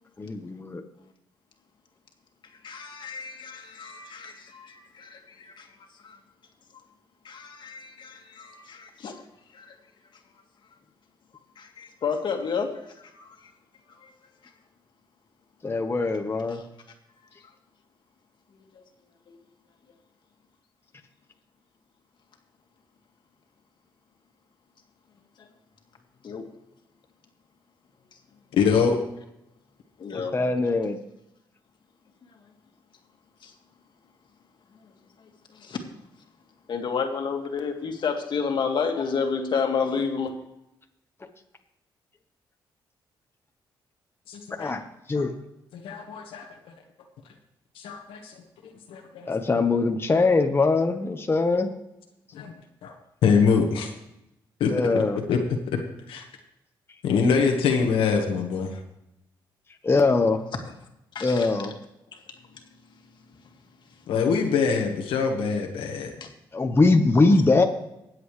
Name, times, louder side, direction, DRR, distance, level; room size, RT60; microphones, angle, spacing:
voice 1, 0.2-0.8 15.6-16.6 30.1-31.0 44.6-44.8 45.1-45.3 49.3-51.7 54.7-55.2 59.8-60.4 61.2-61.7 66.5-67.6, left 3 dB, 25° left, 4 dB, 1.2 m, -22 dB
voice 2, 2.6-5.7 6.0-6.2 7.2-9.2 9.5-9.7 11.6-12.7 13.1-13.3 14.0-14.1 16.5-16.6 19.3-19.4 26.2-26.4 30.0-30.3 33.4-33.5 35.5-35.8 36.7-40.3 61.2-61.5 66.2-66.3, left 5 dB, 60° left, 3 dB, 2.0 m, -30 dB
voice 3, 28.6-29.0 44.3-44.7 45.1-45.2 45.7-46.5 47.7-48.3 48.6-49.3 52.3-52.5 52.8-52.9 53.2-53.9 54.6-55.0 55.3-55.4 55.7-55.8 56.1-56.2 57.0-58.8 64.1-66.1, left 5 dB, 90° left, 2 dB, 1.5 m, -24 dB
20.0 x 8.0 x 3.3 m, 0.88 s
cardioid pair, 75°, 9 cm